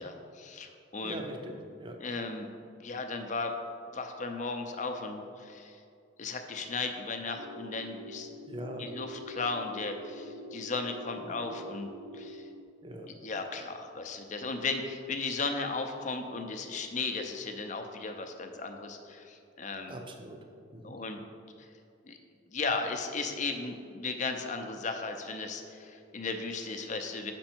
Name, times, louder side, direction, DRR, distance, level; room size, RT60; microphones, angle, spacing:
voice 1, 0.0-1.2 2.0-2.5 2.8-3.5 3.9-5.8 6.2-8.3 8.8-12.4 13.2-20.0 20.8-21.2 22.1-22.2 22.5-27.3, left 3 dB, 40° left, 5 dB, 0.6 m, -36 dB
voice 2, 1.0-2.0 8.5-8.9 11.2-11.4 12.8-13.1 19.9-20.4 20.7-21.0, right 1 dB, 25° right, 3 dB, 0.6 m, -42 dB
sound 1, 7.4-12.6, equal, 80° right, 0.5 m, -46 dB
6.6 x 5.2 x 4.4 m, 2.4 s
head